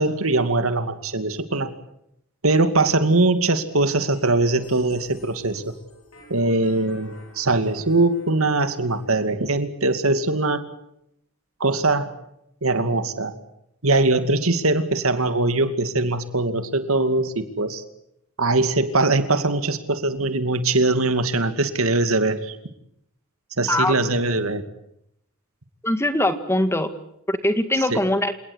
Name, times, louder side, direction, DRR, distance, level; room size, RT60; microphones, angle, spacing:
voice 1, 0.0-1.7 2.4-5.7 6.3-10.6 11.6-12.1 12.6-13.3 13.8-17.8 18.4-22.6 23.6-24.6 27.9-28.0, right 2 dB, 80° right, 9 dB, 2.5 m, -21 dB
sound 1, 4.1-9.1, left 2 dB, 75° left, 7.9 m, -49 dB
voice 2, 25.8-26.9 27.3-28.3, left 1 dB, 10° left, 9 dB, 2.0 m, -21 dB
29.0 x 18.5 x 8.2 m, 0.79 s
head